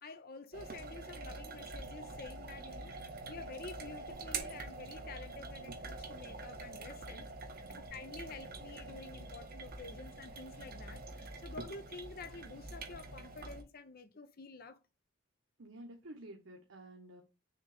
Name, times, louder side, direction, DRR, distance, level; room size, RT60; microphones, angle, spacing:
voice 1, 0.0-7.3 7.7-14.8, left 3 dB, 50° left, 0.8 m, -50 dB
sound 1, 0.5-13.6, right 3 dB, 50° right, 1.1 m, -45 dB
voice 2, 7.5-7.9 15.6-17.2, right 1 dB, 85° right, 1.1 m, -51 dB
6.4 x 3.1 x 4.9 m
head